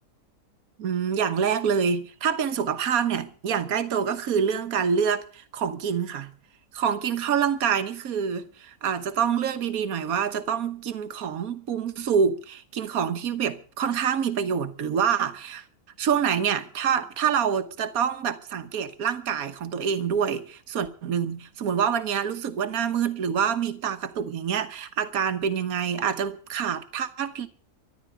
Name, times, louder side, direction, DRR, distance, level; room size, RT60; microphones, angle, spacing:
voice 1, 0.8-6.3 6.7-15.6 16.0-27.5, right 7 dB, 75° right, 1.5 m, -26 dB
14.0 x 11.0 x 8.0 m
omnidirectional pair, 1.5 m